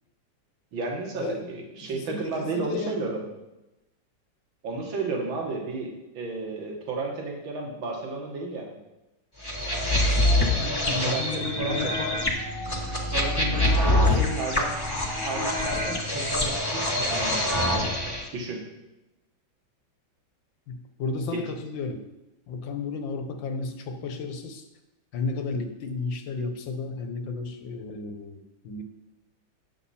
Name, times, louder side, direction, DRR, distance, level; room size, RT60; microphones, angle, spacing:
voice 1, 0.7-3.2 4.6-8.8 10.8-11.9 13.1-14.7 15.2-17.9 18.3-18.6 21.3-21.4, right 3 dB, 75° right, 0 dB, 2.3 m, -33 dB
voice 2, 1.8-3.0 10.3-12.2 13.3-14.4 20.7-22.0 22.5-24.6 25.1-28.8, left 3 dB, 70° left, 6 dB, 1.6 m, -33 dB
sound 1, 9.4-18.2, left 1 dB, 15° left, 1.1 m, -25 dB
9.9 x 7.4 x 4.2 m, 0.97 s
omnidirectional pair, 2.2 m